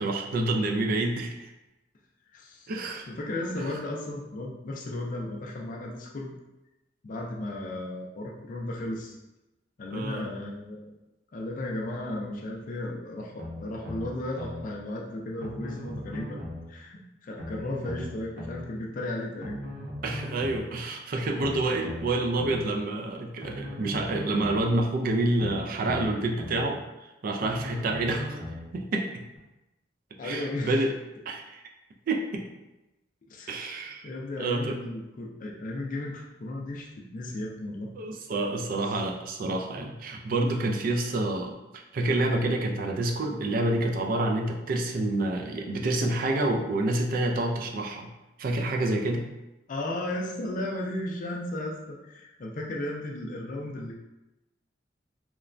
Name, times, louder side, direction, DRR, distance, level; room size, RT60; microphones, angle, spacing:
voice 1, 0.0-1.5 2.7-3.0 9.9-10.2 20.0-28.4 28.7-29.1 30.2-30.9 31.3-31.6 32.1-32.4 33.5-34.1 34.4-34.8 38.0-48.1 48.4-49.2, right 2 dB, 50° right, 2 dB, 0.3 m, -28 dB
voice 2, 2.3-2.7 3.1-6.3 7.0-9.2 9.8-10.9 11.3-16.4 16.7-19.6 30.2-30.9 33.3-33.5 34.0-37.9 38.8-39.0 49.7-53.9, left 1 dB, 45° left, -1 dB, 0.4 m, -35 dB
sound 1, 13.4-14.6 15.4-16.7 17.4-18.6 19.4-20.6 21.4-22.6 23.4-24.6 25.4-26.6 27.4-28.7 29.4-29.5, left 1 dB, 75° right, 1.0 m, -38 dB
3.0 x 2.1 x 2.4 m, 0.97 s
head